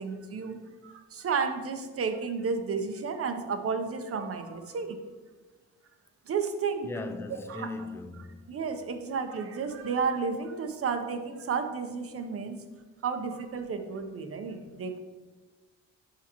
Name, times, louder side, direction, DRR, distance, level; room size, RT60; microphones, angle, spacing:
voice 1, 0.0-5.0 6.3-6.9 7.3-7.7 8.5-12.6 13.0-15.0, right 5 dB, 50° right, 0.9 m, -32 dB
voice 2, 6.8-8.5, left 3 dB, 10° left, 0.5 m, -38 dB
8.5 x 5.6 x 3.0 m
cardioid pair, 90°, 30 cm